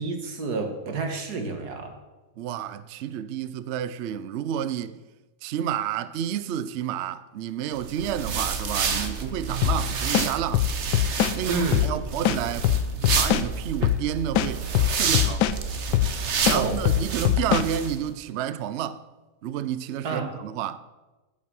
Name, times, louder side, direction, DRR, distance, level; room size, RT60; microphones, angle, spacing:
voice 1, 0.0-2.0 11.5-11.9 16.5-16.8 20.0-20.3, right 3 dB, 65° right, 2.0 m, -29 dB
voice 2, 2.4-5.0 5.4-10.7 11.3-12.7 13.2-14.7 15.0-15.5 16.4-19.1 19.4-20.8, right 10 dB, 85° right, 0.6 m, -30 dB
sound 1, 7.8-18.0, right 5 dB, 50° right, 1.1 m, -29 dB
sound 2, 9.6-9.8 10.1-11.3 11.7-11.9 12.2-13.5 13.8-14.0 14.3-15.6 15.9-16.1 16.5-17.7, left 14 dB, 85° left, 1.3 m, -22 dB
10.0 x 8.7 x 6.2 m
omnidirectional pair, 1.8 m